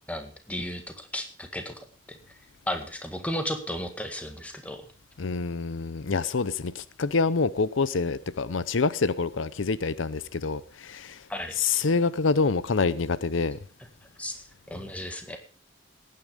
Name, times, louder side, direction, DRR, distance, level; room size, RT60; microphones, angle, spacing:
voice 1, 0.1-2.2 2.7-4.9 11.3-11.6 14.2-15.4, left 1 dB, 5° left, 1.9 m, -34 dB
voice 2, 5.2-11.2 11.6-13.6, left 4 dB, 80° left, 0.7 m, -26 dB
17.5 x 9.5 x 5.2 m
head